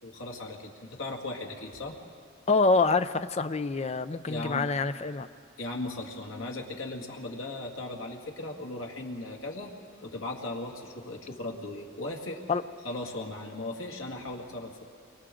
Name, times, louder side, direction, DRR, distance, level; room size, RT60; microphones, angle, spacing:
voice 1, 0.0-2.0 4.3-4.7 5.6-9.7 10.0-12.4 12.8-14.8, left 2 dB, 80° left, 0 dB, 2.2 m, -37 dB
voice 2, 2.5-5.3 12.5-12.6, left 3 dB, 30° left, 11 dB, 0.5 m, -26 dB
29.5 x 23.5 x 3.8 m, 2.3 s
head